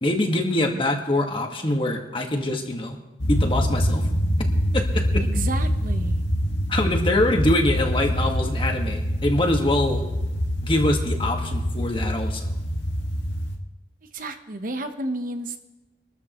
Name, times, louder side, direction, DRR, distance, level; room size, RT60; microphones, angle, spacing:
voice 1, 0.0-3.0 3.3-4.1 4.7-5.2 6.7-10.0 10.6-12.5, left 1 dB, 30° left, 2 dB, 1.7 m, -24 dB
sound 1, 3.2-13.6, equal, 90° left, 1.8 m, -25 dB
voice 2, 5.2-6.2 14.1-15.6, right 2 dB, 50° right, 7 dB, 1.0 m, -31 dB
25.0 x 13.5 x 3.1 m, 1.0 s
head